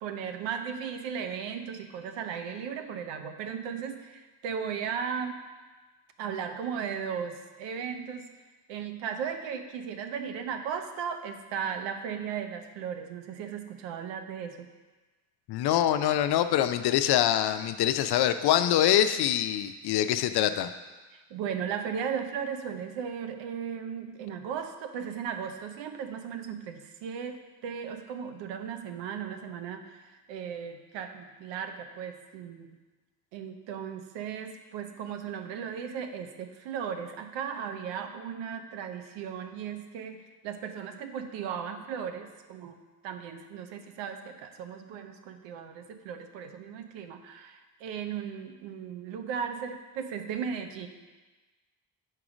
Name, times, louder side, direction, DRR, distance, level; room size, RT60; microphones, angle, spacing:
voice 1, 0.0-5.4 6.2-8.3 8.7-14.7 21.1-32.7 33.3-42.8 43.0-50.9, right 7 dB, 70° right, 6 dB, 0.7 m, -36 dB
voice 2, 15.5-20.7, left 11 dB, 60° left, 11 dB, 0.5 m, -24 dB
4.9 x 4.6 x 6.0 m, 1.3 s
hypercardioid pair, 40°, 46 cm